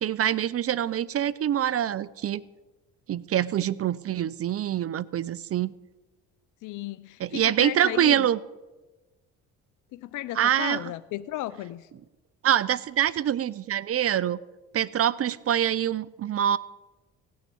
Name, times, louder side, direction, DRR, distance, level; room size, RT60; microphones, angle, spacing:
voice 1, 0.0-2.4 3.1-5.7 7.2-8.4 10.4-10.8 12.4-14.4 14.7-16.6, right 10 dB, 40° right, 19 dB, 0.6 m, -25 dB
voice 2, 6.6-8.3 9.9-11.9, left 15 dB, 60° left, 14 dB, 0.6 m, -35 dB
17.5 x 6.4 x 8.4 m, 1.1 s
supercardioid pair, 70°, 35 cm